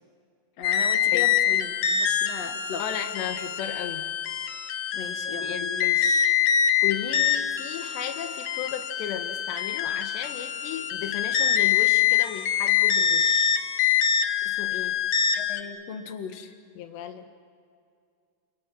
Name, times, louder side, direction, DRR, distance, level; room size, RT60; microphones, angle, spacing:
sound 1, 0.6-15.6, left 9 dB, 70° left, 1.6 m, -25 dB
voice 1, 0.6-2.8 4.9-5.7 15.3-16.5, left 7 dB, 50° left, 7 dB, 2.1 m, -37 dB
voice 2, 2.8-4.1 5.2-6.3 6.8-13.5 14.4-15.0 16.8-17.3, left 9 dB, 90° left, 6 dB, 3.5 m, -35 dB
29.5 x 27.5 x 6.3 m, 2.4 s
omnidirectional pair, 4.8 m